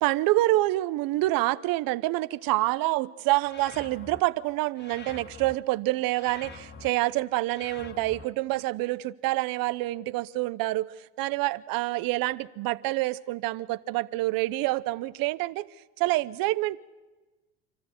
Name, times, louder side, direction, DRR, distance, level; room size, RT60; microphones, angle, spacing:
voice 1, 0.0-15.7 16.0-16.8, right 18 dB, 60° right, 0.8 m, -27 dB
sound 1, 3.4-4.2 4.8-5.6 6.1-6.9 7.5-8.3, left 4 dB, 25° left, 1.3 m, -45 dB
29.0 x 13.0 x 7.9 m
supercardioid pair, 90°, 38 cm